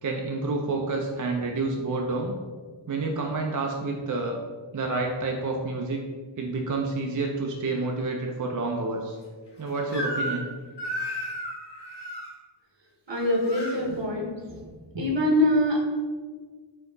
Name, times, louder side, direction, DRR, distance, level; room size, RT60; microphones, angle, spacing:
voice 1, 0.0-2.4 2.9-4.4 4.7-6.0 6.4-9.2 9.6-10.5, right 3 dB, 40° right, 1 dB, 0.5 m, -29 dB
Crying sobbing / Screech, 9.9-10.5 10.8-12.3 13.1-13.8, equal, 55° left, 1.3 m, -33 dB
voice 2, 13.1-14.7 14.9-15.8, left 1 dB, 60° right, 0 dB, 1.1 m, -24 dB
4.3 x 2.8 x 3.8 m, 1.5 s
wide cardioid pair, 75°, 49 cm